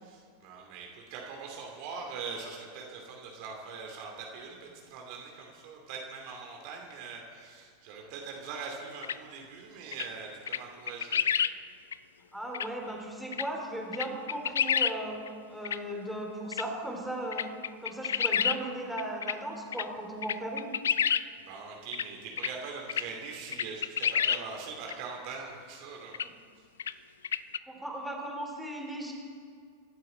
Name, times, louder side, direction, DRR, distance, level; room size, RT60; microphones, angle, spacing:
voice 1, 0.0-11.2 21.4-26.1, right 5 dB, 45° right, 0 dB, 2.5 m, -42 dB
sound 1, 9.0-9.2 9.9-10.1 10.5-10.6 10.9-11.5 11.9-12.0 12.5-12.7 13.3-13.4 13.9-15.0 15.3-15.4 15.6-15.8 16.5-16.6 17.3-18.6 19.0-19.4 19.7-19.8 20.2-21.2 21.9-22.1 22.4-22.5 22.9-23.0 23.5-24.4 24.9-25.0 26.1-26.3 26.8-26.9 27.2-27.6, left 8 dB, 65° left, 0.4 m, -28 dB
voice 2, 12.3-15.2 15.5-17.5 17.8-20.7 27.7-29.1, right 1 dB, ahead, -1 dB, 3.4 m, -37 dB
25.5 x 12.5 x 4.3 m, 2.1 s
figure-of-eight pair, 90°, 0 cm